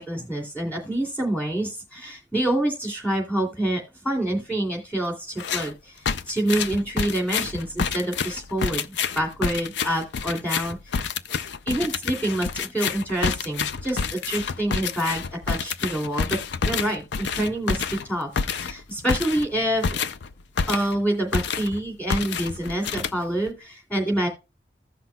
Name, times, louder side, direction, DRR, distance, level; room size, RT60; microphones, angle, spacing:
voice 1, 0.0-5.9 6.3-11.1 11.7-16.4 16.6-20.0 20.7-24.3, right 1 dB, 10° left, 1 dB, 2.5 m, -27 dB
sound 1, 5.4-5.7 6.1-21.0 21.3-21.8 22.1-23.5, left 6 dB, 80° left, 0.5 m, -28 dB
15.5 x 5.8 x 2.3 m, 0.28 s
head